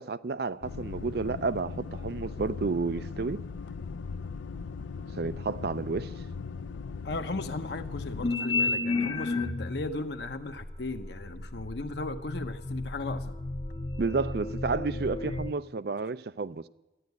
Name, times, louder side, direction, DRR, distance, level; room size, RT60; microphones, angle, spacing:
voice 1, 0.0-3.4 5.2-6.1 14.0-16.7, right 4 dB, 60° right, 0.5 m, -31 dB
sound 1, 0.6-8.3, left 5 dB, 85° left, 0.4 m, -39 dB
voice 2, 7.0-13.4, left 2 dB, 65° left, 0.9 m, -36 dB
sound 2, 8.2-9.9 10.6-15.5, left 3 dB, 25° left, 0.7 m, -32 dB
14.0 x 10.5 x 9.5 m
head